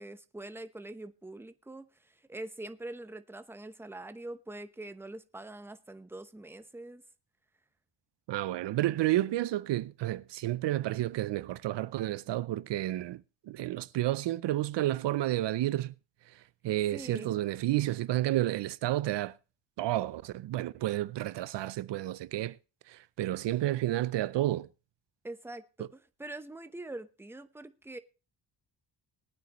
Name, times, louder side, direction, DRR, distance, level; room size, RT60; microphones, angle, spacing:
voice 1, 0.0-7.0 16.9-17.3 25.2-28.0, right 2 dB, 5° right, 0.9 m, -44 dB
voice 2, 8.3-15.9 16.3-19.3 19.8-22.6 22.9-24.7, right 15 dB, 70° right, 0.6 m, -31 dB
20.0 x 9.2 x 3.0 m
cardioid pair, 95°, 44 cm